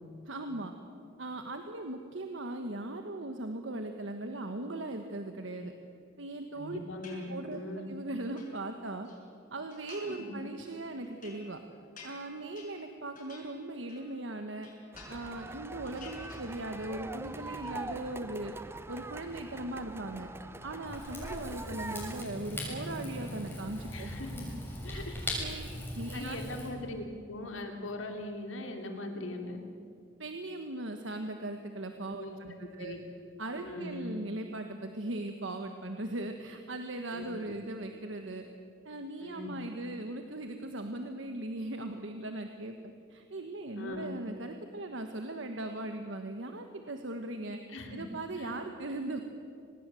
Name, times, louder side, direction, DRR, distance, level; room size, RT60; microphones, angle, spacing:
voice 1, 0.3-0.7 1.2-5.7 6.2-6.8 7.3-9.1 9.5-11.6 12.0-14.7 15.1-18.5 18.9-20.3 20.6-24.1 24.9-25.0 25.4-25.7 25.9-26.4 30.2-32.9 33.4-38.4 38.8-47.6 47.9-49.2, right 2 dB, 70° right, 5 dB, 1.3 m, -39 dB
voice 2, 6.5-7.9 10.1-10.3 23.9-24.5 24.8-25.1 26.1-29.6 32.1-33.0 33.6-34.1 37.1-37.6 39.2-39.5 43.7-44.1 47.7-48.0 48.3-48.5, left 2 dB, 85° left, 3 dB, 3.3 m, -40 dB
sound 1, 7.0-7.7 8.1-9.2 9.7-10.3 10.6-14.2 14.5-15.5 15.8-16.9 17.2-17.8, left 4 dB, 45° left, 6.8 m, -53 dB
sound 2, 14.9-22.2, right 2 dB, 10° right, 0.6 m, -43 dB
Rain / Fire, 20.8-26.7, left 1 dB, 10° left, 6.6 m, -39 dB
25.5 x 19.5 x 7.7 m, 2.4 s
head